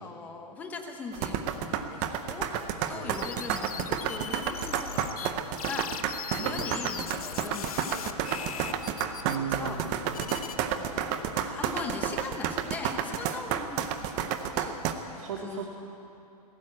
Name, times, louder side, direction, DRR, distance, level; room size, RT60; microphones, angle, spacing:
voice 1, 0.0-9.9 10.7-15.7, left 4 dB, 10° left, 4 dB, 0.9 m, -41 dB
sound 1, 1.1-14.9, right 9 dB, 15° right, 0.6 m, -30 dB
sound 2, 3.1-5.3 5.6-10.6, left 8 dB, 65° left, 1.2 m, -39 dB
voice 2, 6.4-6.8 9.2-10.4 15.1-15.7, right 7 dB, 50° right, -1 dB, 2.0 m, -37 dB
19.5 x 17.0 x 8.6 m, 2.9 s
hypercardioid pair, 175°, 20 cm